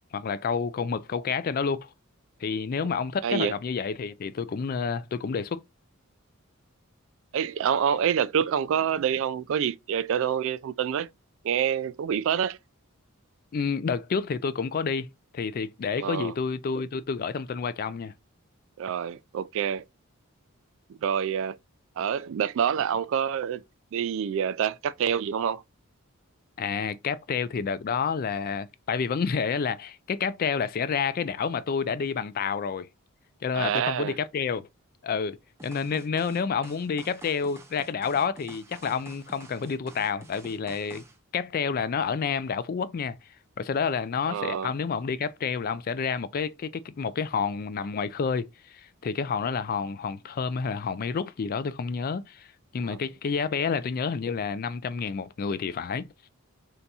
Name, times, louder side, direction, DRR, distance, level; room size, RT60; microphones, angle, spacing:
voice 1, 0.1-1.9 2.4-5.6 13.5-18.1 26.6-32.9 33.4-34.7 35.0-41.0 41.3-43.2 43.6-52.5 52.7-56.1, left 6 dB, 40° left, 0.3 m, -29 dB
voice 2, 3.2-3.5 7.3-11.1 11.4-12.6 16.0-16.3 18.8-19.8 21.0-21.6 22.0-23.6 23.9-25.6 33.5-34.1 44.3-44.7 52.8-53.0, right 8 dB, 60° right, 0.3 m, -27 dB
sound 1, 35.6-41.2, right 2 dB, 10° right, 0.5 m, -48 dB
3.4 x 2.8 x 3.9 m
head